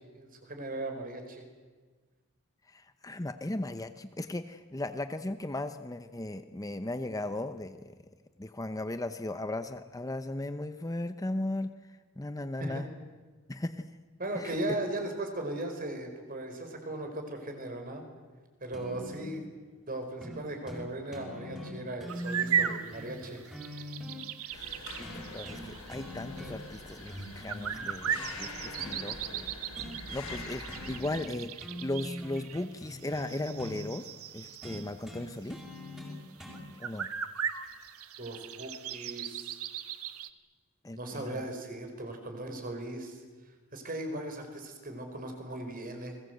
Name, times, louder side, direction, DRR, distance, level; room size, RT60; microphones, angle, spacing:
voice 1, 0.0-1.4 12.6-12.8 14.2-18.0 18.6-19.4 19.9-23.4 24.4-24.5 38.2-39.5 41.0-43.2 43.7-46.1, right 1 dB, 40° right, 5 dB, 4.8 m, -38 dB
voice 2, 2.7-7.8 8.4-11.7 12.2-12.9 13.5-13.9 14.3-14.6 24.5-29.6 30.1-35.6 36.8-37.1 40.8-41.5, left 1 dB, 15° left, 9 dB, 0.8 m, -37 dB
sound 1, 18.7-19.3 20.2-20.4 20.7-20.8 21.1-24.2 25.0-25.6 25.9-26.7 27.1-29.0 29.8-30.0 30.2-30.4 30.7-31.3 31.6-33.8 34.6-36.6 37.6-37.7, equal, 5° right, 5.8 m, -42 dB
sound 2, 22.1-34.9 35.5-35.6 36.0-36.1 36.4-40.3, right 8 dB, 85° right, 1.3 m, -37 dB
sound 3, 24.5-31.0, left 3 dB, 80° left, 6.8 m, -45 dB
29.5 x 21.0 x 8.0 m, 1.4 s
head